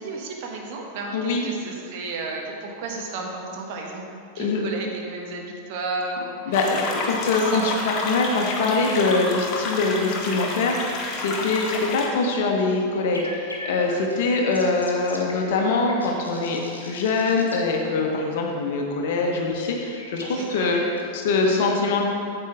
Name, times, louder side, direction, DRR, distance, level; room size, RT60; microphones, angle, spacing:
voice 1, 0.0-4.0 4.3-6.5 7.3-7.8 20.3-21.0 21.4-21.9, right 2 dB, 50° right, 0 dB, 1.3 m, -33 dB
voice 2, 1.1-1.5 4.4-4.6 6.5-7.7 8.0-20.8 21.1-22.1, left 3 dB, 55° left, 1 dB, 1.3 m, -23 dB
sound 1, 6.5-12.1, left 3 dB, 35° left, 1.3 m, -30 dB
sound 2, 13.1-17.6 20.0-21.2, left 1 dB, 80° left, 1.2 m, -40 dB
8.8 x 8.1 x 3.6 m, 2.4 s
figure-of-eight pair, 90°, 0 cm